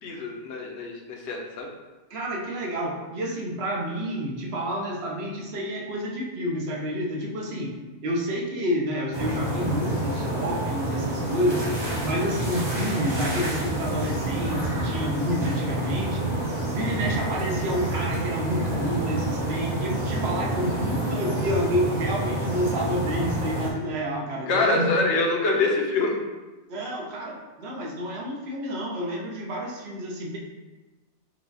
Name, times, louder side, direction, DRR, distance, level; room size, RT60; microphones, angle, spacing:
voice 1, 0.0-1.7 24.5-26.2, left 2 dB, 60° left, 0 dB, 0.9 m, -25 dB
voice 2, 2.1-11.7 12.0-16.3 16.6-25.1 26.7-30.4, equal, 55° right, -1 dB, 0.9 m, -29 dB
sound 1, 9.1-23.7, right 1 dB, 25° right, 0.7 m, -28 dB
4.6 x 2.3 x 3.9 m, 1.2 s
omnidirectional pair, 1.4 m